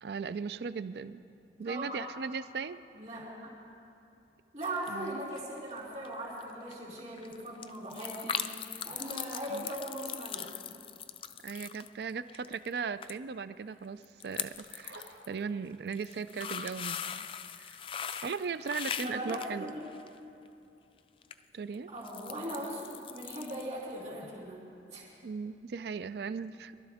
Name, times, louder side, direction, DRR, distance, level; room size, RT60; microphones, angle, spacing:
voice 1, 0.0-1.2 1.6-2.8 4.9-5.2 9.5-9.7 11.4-17.3 17.6-17.8 18.2-19.7 21.5-21.9 25.2-26.7, right 5 dB, 65° right, 14 dB, 0.4 m, -38 dB
voice 2, 1.6-2.0 2.9-3.5 4.5-10.5 19.0-19.9 21.9-24.6 24.9-25.1, right 1 dB, 40° right, -6 dB, 3.1 m, -39 dB
sound 1, 4.6-5.1 5.4-5.8 6.0-6.1 6.4-6.5 6.7-12.8 13.0-13.1 13.4-13.5 14.0-15.3 15.7-20.2 21.2-21.3 21.7-23.7 24.0-24.1, left 8 dB, 30° left, 0.3 m, -40 dB
sound 2, 14.4-16.0 16.3-16.4, right 2 dB, 80° right, 1.9 m, -52 dB
23.0 x 12.5 x 3.5 m, 2.7 s
head